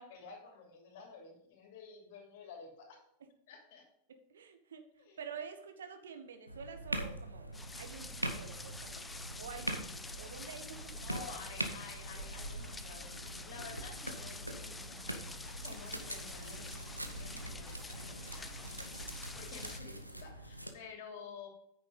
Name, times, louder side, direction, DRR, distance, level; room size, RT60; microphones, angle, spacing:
voice 1, 0.0-3.0 3.5-3.9 5.0-5.2 10.9-15.2 15.6-18.7 19.2-21.5, left 5 dB, 50° left, 1 dB, 3.1 m, -51 dB
voice 2, 4.1-9.1 9.4-9.9 10.2-11.3, right 6 dB, 65° right, 7 dB, 1.2 m, -48 dB
sound 1, 6.5-20.7, right 1 dB, 90° right, 1.0 m, -43 dB
sound 2, 7.5-19.8, left 3 dB, 10° left, 0.5 m, -48 dB
9.5 x 6.6 x 5.2 m, 0.74 s
figure-of-eight pair, 90°, 0 cm